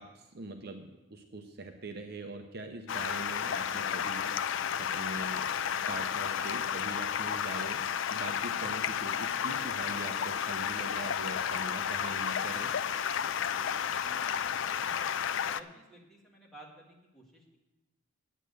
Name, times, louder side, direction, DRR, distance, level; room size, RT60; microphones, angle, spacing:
voice 1, 0.0-5.4 5.9-7.8 8.1-12.7, right 2 dB, 45° right, 5 dB, 0.7 m, -42 dB
Stream, 2.9-15.6, left 8 dB, 60° left, 0.3 m, -32 dB
voice 2, 13.7-15.0 15.4-17.6, right 1 dB, ahead, -4 dB, 1.9 m, -55 dB
9.1 x 9.0 x 6.6 m, 1.0 s
head